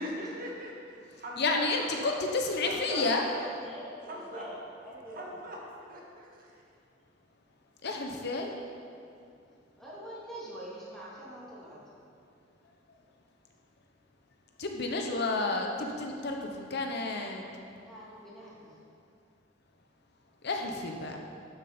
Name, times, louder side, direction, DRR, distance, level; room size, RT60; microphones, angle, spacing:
voice 1, 0.0-1.7 2.0-2.1 2.6-3.0 3.3-3.5 4.1-4.4 5.1-5.6 5.9-6.5, equal, 50° right, -2 dB, 1.6 m, -40 dB
voice 2, 1.4-3.2 7.8-8.5 12.6-12.7 14.6-17.4 20.4-21.2, left 3 dB, 60° left, 2 dB, 0.9 m, -31 dB
voice 3, 3.4-4.6 4.8-5.4 9.8-11.8 17.8-18.7, right 1 dB, ahead, -8 dB, 2.6 m, -45 dB
12.5 x 6.9 x 4.3 m, 2.4 s
head